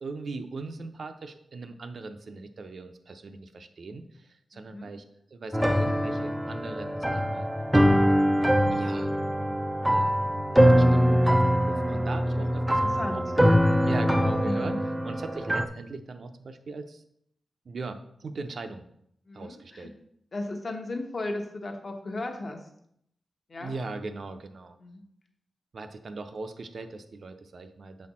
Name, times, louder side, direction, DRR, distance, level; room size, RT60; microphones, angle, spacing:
voice 1, 0.0-5.0 5.3-7.5 8.7-9.1 9.9-13.2 13.8-14.7 15.0-17.0 17.7-18.8 19.3-19.9 23.6-24.8 25.7-28.1, right 3 dB, 55° right, 7 dB, 0.5 m, -39 dB
voice 2, 4.5-4.9 12.3-13.2 14.4-14.8 19.3-19.9 20.3-22.7 23.5-23.7 24.8-25.0, left 2 dB, 40° left, 4 dB, 1.0 m, -36 dB
sound 1, 5.5-15.7, equal, 5° right, 0.4 m, -23 dB
6.8 x 4.2 x 4.2 m, 0.71 s
wide cardioid pair, 125°, 0 cm